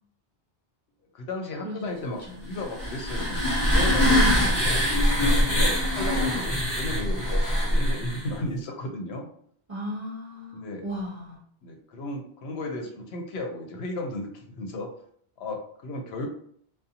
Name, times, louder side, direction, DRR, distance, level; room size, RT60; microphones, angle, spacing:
voice 1, 1.1-4.8 5.2-9.3 10.5-10.8 11.6-14.9 15.4-16.3, left 2 dB, 75° left, 3 dB, 0.8 m, -35 dB
sound 1, 2.5-8.3, equal, 20° left, 1.0 m, -23 dB
voice 2, 4.0-4.6 9.7-11.4, equal, 40° right, -6 dB, 0.6 m, -35 dB
2.5 x 2.1 x 2.7 m, 0.63 s
omnidirectional pair, 1.1 m